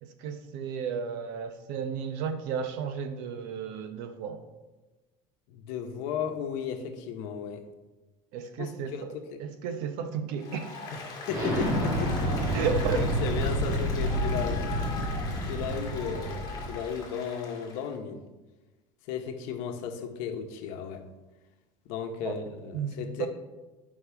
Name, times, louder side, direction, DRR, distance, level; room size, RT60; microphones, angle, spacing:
voice 1, 0.0-4.5 8.3-9.1 9.4-10.7 12.5-13.1 22.2-22.4 22.7-23.3, right 6 dB, 65° right, 8 dB, 0.8 m, -33 dB
voice 2, 5.5-7.6 8.6-9.4 10.9-12.3 12.9-14.7 15.4-18.2 19.1-21.0 21.8-23.3, left 7 dB, 70° left, 5 dB, 0.9 m, -35 dB
Applause, 10.4-17.9, left 4 dB, 25° left, 1.6 m, -40 dB
Explosion, 11.3-16.8, equal, 25° right, 1.4 m, -29 dB
9.6 x 5.3 x 3.4 m, 1.1 s
cardioid pair, 170°, 14 cm